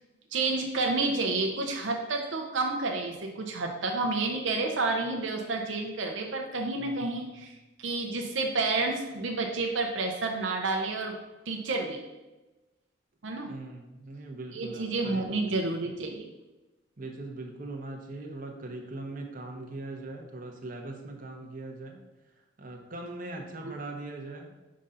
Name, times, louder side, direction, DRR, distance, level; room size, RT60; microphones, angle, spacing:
voice 1, 0.3-11.2 11.5-12.0 13.2-13.5 14.5-16.3, right 3 dB, 70° right, 2 dB, 0.6 m, -30 dB
voice 2, 13.5-15.7 17.0-22.0 22.6-24.5, right 2 dB, 45° right, 2 dB, 0.9 m, -40 dB
5.3 x 3.8 x 5.5 m, 1.1 s
head